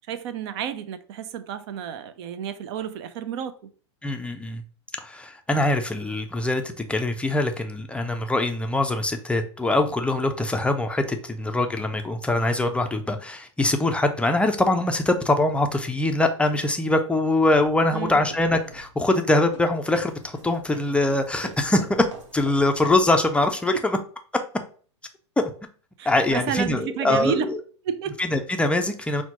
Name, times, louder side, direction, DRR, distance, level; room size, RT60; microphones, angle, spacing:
voice 1, 0.1-3.7 17.9-18.2 26.0-27.5 27.8-28.2, right 9 dB, 60° right, 0.5 m, -31 dB
voice 2, 4.0-4.6 5.0-6.6 6.9-22.1 22.3-24.0 25.4-25.5 26.1-27.6 28.2-29.2, left 2 dB, 5° left, 0.4 m, -23 dB
sound 1, 17.3-23.2, right 3 dB, 90° right, 0.9 m, -45 dB
5.7 x 2.1 x 2.9 m
hypercardioid pair, 110°, 15 cm